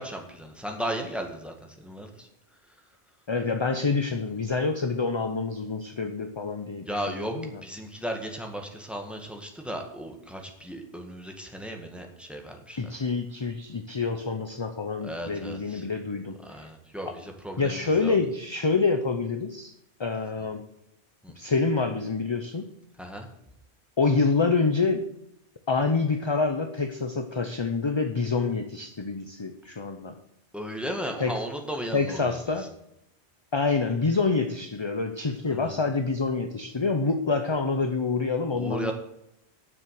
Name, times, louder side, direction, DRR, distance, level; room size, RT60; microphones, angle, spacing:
voice 1, 0.0-2.3 6.9-7.3 7.6-12.8 15.0-15.8 16.4-18.1 21.2-21.3 23.0-23.3 30.5-32.4 35.5-35.7 38.5-38.9, right 1 dB, ahead, 3 dB, 1.9 m, -35 dB
voice 2, 3.3-7.6 12.8-16.4 17.6-19.7 20.0-20.6 21.4-22.7 24.0-25.1 25.7-30.2 31.2-31.4 31.9-32.7 33.5-38.9, left 4 dB, 30° left, 7 dB, 0.7 m, -27 dB
9.9 x 7.5 x 7.6 m, 0.81 s
omnidirectional pair, 1.2 m